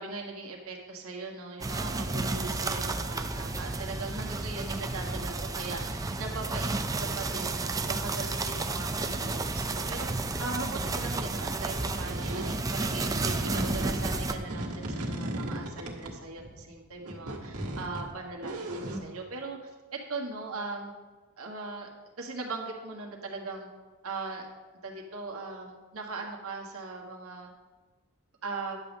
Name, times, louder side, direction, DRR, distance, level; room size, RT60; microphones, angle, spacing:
voice 1, 0.0-20.9 21.4-21.9 22.2-23.7 24.0-24.5 24.8-27.5 28.4-28.8, right 3 dB, 75° right, 0 dB, 1.5 m, -39 dB
sound 1, 1.6-14.3, right 3 dB, 15° right, 0.4 m, -32 dB
sound 2, 11.2-12.6 13.0-16.6 17.0-19.0, right 1 dB, 90° right, 1.6 m, -36 dB
10.5 x 3.5 x 7.3 m, 1.3 s
head